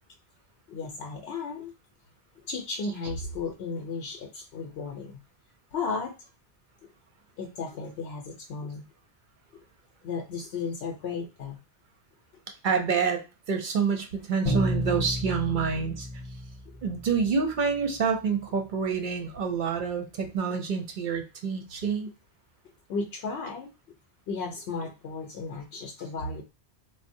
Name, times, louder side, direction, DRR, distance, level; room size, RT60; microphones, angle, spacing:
voice 1, 0.7-1.7 2.5-5.2 5.7-6.1 7.4-8.8 10.0-11.6 22.9-23.7 24.3-26.4, left 4 dB, 70° left, 1 dB, 0.8 m, -34 dB
voice 2, 12.6-13.2 13.5-16.1 16.8-22.1, right 6 dB, 55° right, 5 dB, 0.7 m, -27 dB
Bowed string instrument, 14.4-17.3, equal, 35° left, 0.7 m, -31 dB
3.8 x 2.0 x 2.6 m, 0.29 s
omnidirectional pair, 1.1 m